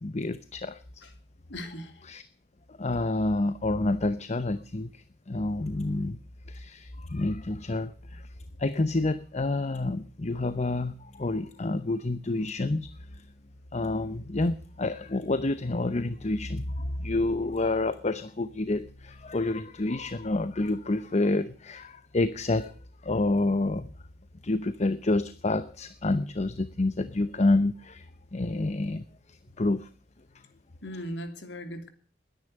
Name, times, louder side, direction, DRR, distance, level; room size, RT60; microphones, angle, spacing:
voice 1, 0.0-0.8 2.1-2.2 2.8-4.9 5.3-6.2 6.5-8.2 8.6-12.9 13.7-22.7 23.0-23.9 24.4-28.0 28.3-29.0 29.6-29.9, left 2 dB, 40° left, 0.8 m, -28 dB
voice 2, 1.5-1.9 30.8-31.9, equal, 85° left, 3.0 m, -38 dB
20.5 x 10.5 x 6.5 m
head